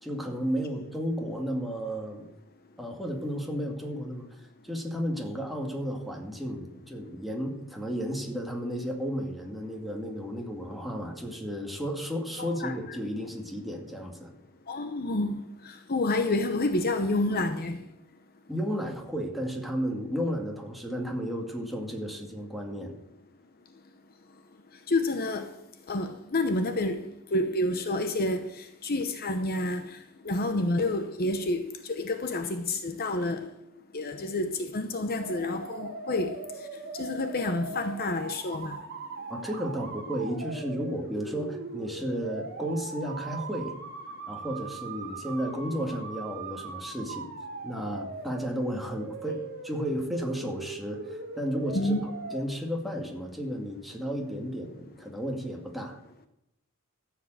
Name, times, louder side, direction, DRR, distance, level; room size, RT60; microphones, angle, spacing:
voice 1, 0.0-2.3 2.8-4.3 4.6-14.3 18.5-22.9 39.3-43.8 44.3-47.3 47.6-56.0, equal, ahead, 2.1 m, -33 dB
voice 2, 12.4-13.0 14.7-15.4 15.6-17.8 24.9-25.5 25.9-27.1 27.3-29.9 30.2-33.5 33.9-36.4 37.0-38.8 51.7-52.0, left 2 dB, 45° left, 0.9 m, -29 dB
sound 1, 35.2-52.4, right 3 dB, 50° right, 1.7 m, -40 dB
13.5 x 7.7 x 7.7 m
head